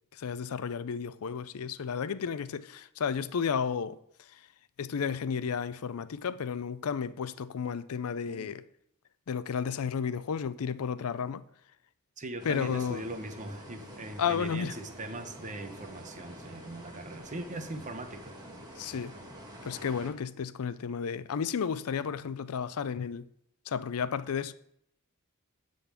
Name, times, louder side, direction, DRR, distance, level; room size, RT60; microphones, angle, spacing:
voice 1, 0.1-4.4 4.8-8.6 9.3-11.4 12.4-13.0 14.2-14.7 18.8-19.2 19.6-23.3 23.7-24.5, left 6 dB, 75° left, 0.5 m, -32 dB
voice 2, 12.2-18.3, right 1 dB, 35° right, 0.8 m, -40 dB
sound 1, 12.4-20.1, equal, 20° right, 1.7 m, -47 dB
10.0 x 3.9 x 7.3 m
head